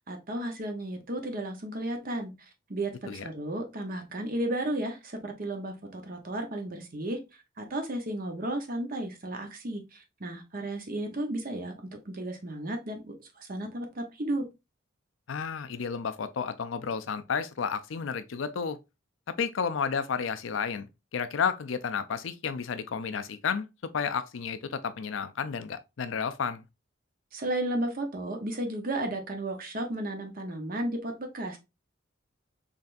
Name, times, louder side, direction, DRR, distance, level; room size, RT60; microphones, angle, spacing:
voice 1, 0.1-2.3 2.7-7.2 7.6-11.7 12.0-14.4 27.3-31.6, right 1 dB, 45° right, 0.9 m, -33 dB
voice 2, 15.3-18.8 19.4-20.9 21.1-23.7 23.9-26.6, left 6 dB, 85° left, 0.5 m, -31 dB
4.0 x 3.3 x 2.5 m
head